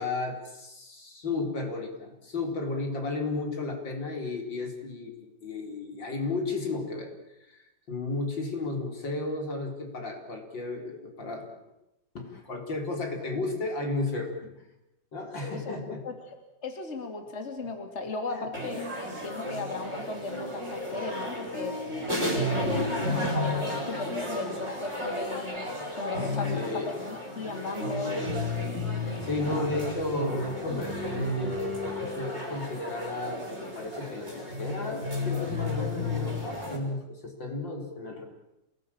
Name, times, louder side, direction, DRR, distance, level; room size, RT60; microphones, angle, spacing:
voice 1, 0.0-5.1 5.4-7.1 7.4-11.4 12.1-14.5 15.1-16.0 18.3-18.5 22.3-23.3 23.7-23.8 26.4-27.0 29.2-38.2, left 3 dB, 80° left, 3 dB, 5.1 m, -34 dB
voice 2, 15.5-16.1 16.6-21.8 22.3-25.7 26.0-28.3, left 3 dB, 35° left, 5 dB, 3.0 m, -36 dB
sound 1, 18.5-36.8, left 1 dB, 35° right, 5.3 m, -32 dB
28.0 x 19.0 x 8.8 m, 0.90 s
omnidirectional pair, 2.0 m